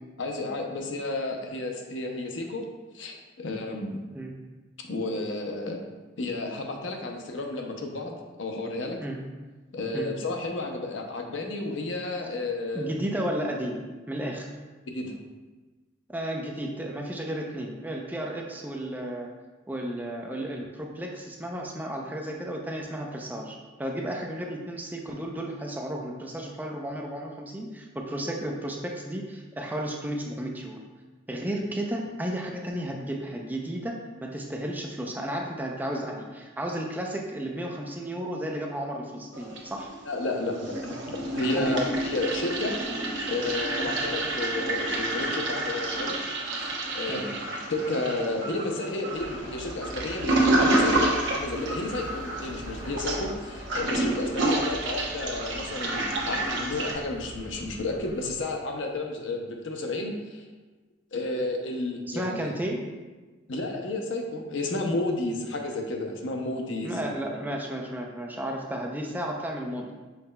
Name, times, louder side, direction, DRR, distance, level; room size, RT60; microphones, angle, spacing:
voice 1, 0.2-2.6 2.9-4.0 4.9-5.8 6.2-8.1 8.4-9.0 9.7-12.9 14.9-15.1 40.1-42.8 43.3-46.2 46.5-47.4 47.7-60.4 61.1-62.5 63.5-67.1, left 2 dB, 80° left, 2 dB, 0.6 m, -32 dB
voice 2, 12.7-14.5 16.1-19.3 19.7-30.8 31.3-39.9 41.5-41.8 43.9-44.0 47.1-47.3 62.1-62.8 66.8-69.9, right 1 dB, 10° right, 0 dB, 0.4 m, -33 dB
Toilet flush, 39.3-40.2 40.4-56.9, right 2 dB, 75° right, 0.8 m, -29 dB
sound 1, 49.1-58.5, equal, 35° left, 0.8 m, -43 dB
5.7 x 4.2 x 2.2 m, 1.3 s
head